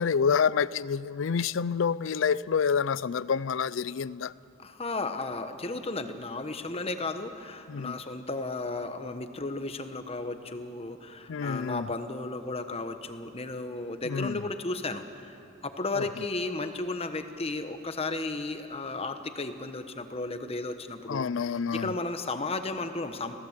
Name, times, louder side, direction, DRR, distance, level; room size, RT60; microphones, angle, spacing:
voice 1, 0.0-4.3 7.7-8.0 11.3-11.9 14.0-14.4 16.0-16.1 21.1-21.9, left 6 dB, 75° left, 0.4 m, -28 dB
voice 2, 4.6-21.3 21.7-23.3, left 3 dB, 30° left, 1.2 m, -34 dB
25.5 x 17.0 x 8.1 m
head